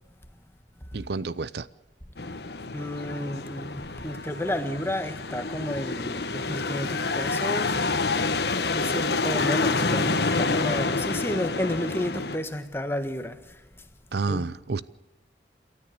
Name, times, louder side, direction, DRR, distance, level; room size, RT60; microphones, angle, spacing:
voice 1, 0.9-1.7 14.1-14.8, right 4 dB, 70° right, 0.6 m, -29 dB
sound 1, 2.2-12.4, left 3 dB, 70° left, 1.3 m, -28 dB
voice 2, 2.7-7.8 8.7-13.6 14.3-14.5, left 1 dB, 15° left, 1.5 m, -31 dB
28.0 x 13.5 x 6.8 m
head